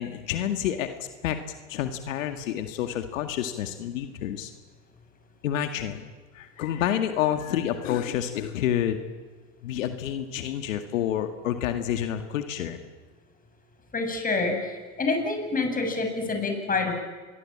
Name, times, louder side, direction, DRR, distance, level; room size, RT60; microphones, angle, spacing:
voice 1, 0.0-1.4 1.7-4.5 5.4-6.1 6.3-9.0 9.6-12.8, left 10 dB, 80° left, 7 dB, 2.0 m, -29 dB
voice 2, 13.9-14.5 15.0-17.0, left 3 dB, 20° left, 4 dB, 7.0 m, -27 dB
27.0 x 22.5 x 8.8 m, 1.4 s
hypercardioid pair, 95°, 38 cm